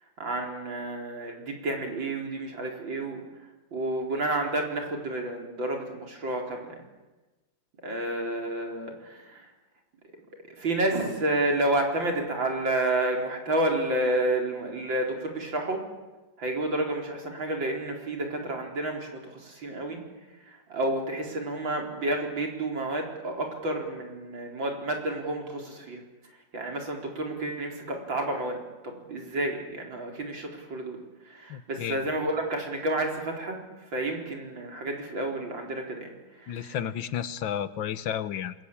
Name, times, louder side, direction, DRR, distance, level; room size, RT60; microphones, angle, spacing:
voice 1, 0.2-3.2 3.7-6.8 7.8-9.5 10.6-15.8 16.4-20.0 20.5-26.0 26.5-28.6 28.8-31.0 31.2-36.8, right 1 dB, 80° right, 2 dB, 4.9 m, -30 dB
voice 2, 31.5-32.0 36.5-38.5, left 9 dB, 80° left, 14 dB, 1.8 m, -32 dB
27.5 x 21.5 x 8.7 m, 1.2 s
omnidirectional pair, 2.0 m